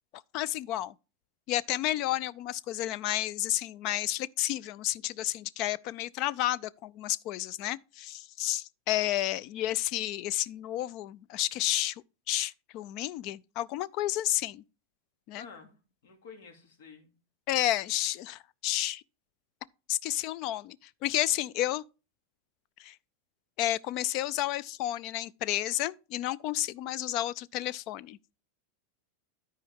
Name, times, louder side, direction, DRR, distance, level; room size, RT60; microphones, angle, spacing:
voice 1, 0.3-0.9 1.5-14.6 15.3-15.5 17.5-19.0 19.9-20.8 21.0-21.8 22.8-23.0 23.6-28.2, left 14 dB, 40° left, 0.3 m, -31 dB
voice 2, 15.3-15.8 16.0-17.1, left 5 dB, 70° left, 2.6 m, -50 dB
13.0 x 4.6 x 3.5 m
supercardioid pair, 160°, 0 cm